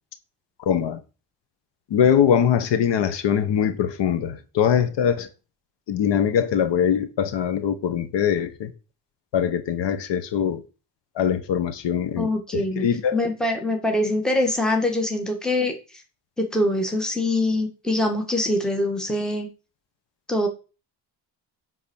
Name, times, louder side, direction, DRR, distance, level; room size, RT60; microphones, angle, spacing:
voice 1, 0.6-1.0 1.9-5.3 5.9-8.7 9.3-10.6 11.1-13.2, left 8 dB, 90° left, 1.5 m, -22 dB
voice 2, 12.2-12.9 13.1-15.7 16.4-19.5 20.3-20.5, left 1 dB, ahead, 1.8 m, -23 dB
10.0 x 4.2 x 7.2 m
cardioid pair, 130°, 41 cm